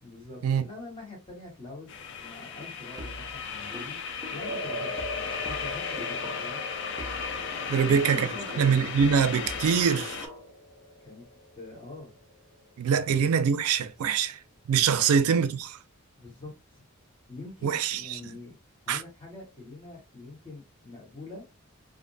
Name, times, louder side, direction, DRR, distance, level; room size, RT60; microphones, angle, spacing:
voice 1, 0.0-6.6 7.7-9.0 11.0-11.2 11.5-12.2 12.9-13.0 14.9-15.1 16.2-16.8 17.3-18.5 18.8-21.4, left 2 dB, 25° left, 1.1 m, -44 dB
sound 1, 1.9-10.3, left 5 dB, 55° left, 0.4 m, -36 dB
sound 2, 3.0-6.7 7.0-10.7, equal, 15° right, 0.4 m, -45 dB
sound 3, 4.4-12.7, left 1 dB, 75° left, 0.9 m, -41 dB
voice 2, 7.7-8.3 8.6-10.2 12.8-14.4 14.7-15.8 17.6-18.2 18.9-19.0, right 7 dB, 85° right, 0.4 m, -24 dB
2.5 x 2.1 x 2.5 m
head